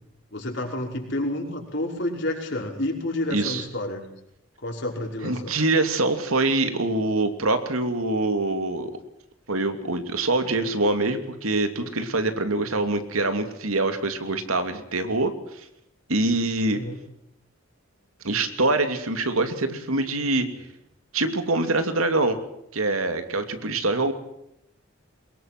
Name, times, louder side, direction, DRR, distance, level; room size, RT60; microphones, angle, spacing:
voice 1, 0.3-4.0 4.6-5.5 16.7-17.0, left 1 dB, 55° left, 1 dB, 5.4 m, -29 dB
voice 2, 3.3-3.6 5.2-8.9 9.5-15.6 16.1-16.8 18.2-20.5 21.1-22.4 22.7-24.1, right 2 dB, 90° right, 8 dB, 2.8 m, -24 dB
23.5 x 21.5 x 6.1 m, 0.80 s
head